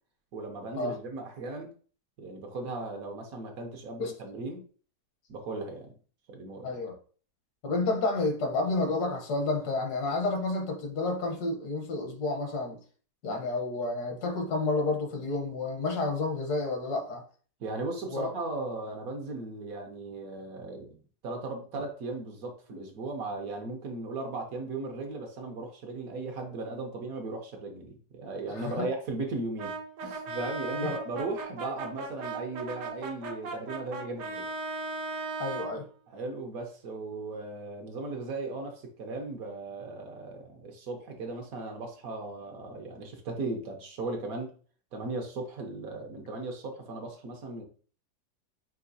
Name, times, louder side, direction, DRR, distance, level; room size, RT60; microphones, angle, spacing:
voice 1, 0.3-1.7 2.2-4.6 5.3-5.9 6.3-6.8 17.6-21.0 21.2-29.7 30.0-34.4 36.1-44.5 44.9-47.6, right 3 dB, 65° right, 3 dB, 1.2 m, -37 dB
voice 2, 6.6-6.9 7.6-12.8 13.2-17.2 18.1-18.3 28.5-28.9 30.7-30.9 35.4-35.8, left 3 dB, 70° left, 4 dB, 1.5 m, -30 dB
Brass instrument, 29.6-35.7, right 3 dB, 85° right, 1.5 m, -37 dB
5.7 x 2.7 x 2.7 m, 0.42 s
omnidirectional pair, 1.8 m